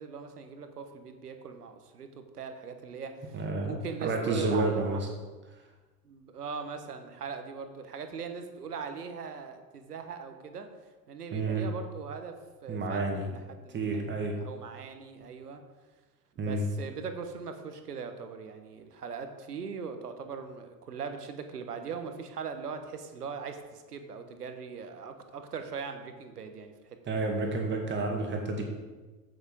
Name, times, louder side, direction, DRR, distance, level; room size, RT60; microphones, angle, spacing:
voice 1, 0.0-5.0 6.0-10.7 11.1-14.0 14.3-15.6 16.4-26.7, right 6 dB, 75° right, 7 dB, 1.2 m, -40 dB
voice 2, 3.3-5.1 11.3-11.7 12.7-13.3 13.7-14.3 16.4-16.7 27.1-28.6, right 2 dB, 25° right, 2 dB, 2.1 m, -30 dB
8.8 x 8.5 x 5.1 m, 1.3 s
figure-of-eight pair, 80°, 47 cm